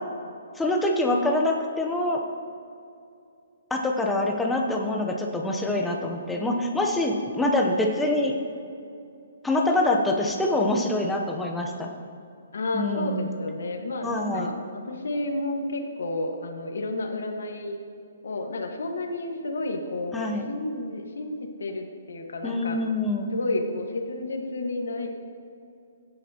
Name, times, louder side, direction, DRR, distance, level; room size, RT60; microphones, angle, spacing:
voice 1, 0.5-2.2 3.7-8.4 9.4-11.9 12.7-13.4 14.0-14.5 20.1-20.4 22.4-23.3, left 1 dB, 5° left, 0 dB, 0.8 m, -25 dB
voice 2, 12.5-17.8 18.2-22.8 23.3-25.1, left 2 dB, 85° left, 3 dB, 1.5 m, -31 dB
16.5 x 9.4 x 2.9 m, 2.5 s
hypercardioid pair, 170°, 0 cm